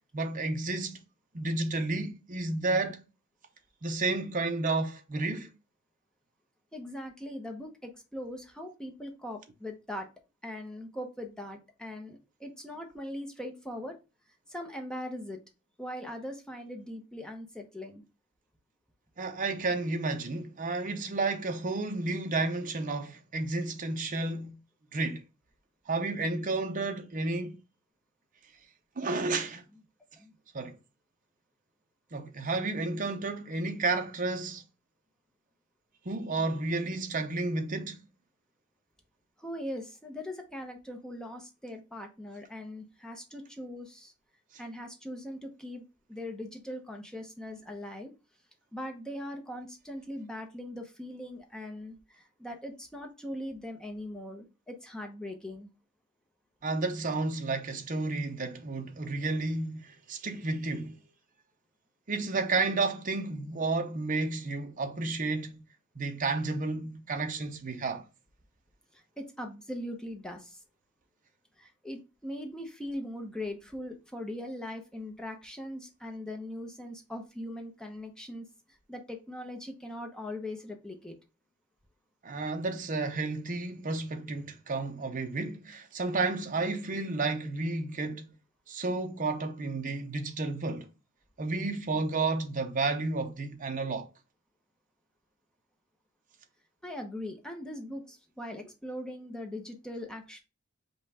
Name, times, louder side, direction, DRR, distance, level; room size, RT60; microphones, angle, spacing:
voice 1, 0.1-1.0 1.3-3.0 3.8-5.5 19.2-24.6 24.9-25.2 25.9-27.6 29.0-29.6 30.5-30.8 32.1-34.6 36.0-38.0 56.6-61.0 62.1-65.6 65.9-68.0 82.2-88.3 88.7-90.9 91.4-94.1, right 3 dB, 40° right, 0.7 m, -31 dB
voice 2, 6.7-10.1 10.4-14.0 14.5-15.4 15.8-18.0 30.1-30.3 39.4-44.1 44.6-48.1 48.7-55.7 68.9-70.6 71.6-81.1 96.8-100.4, left 1 dB, 5° left, 0.8 m, -40 dB
5.4 x 2.3 x 4.1 m
head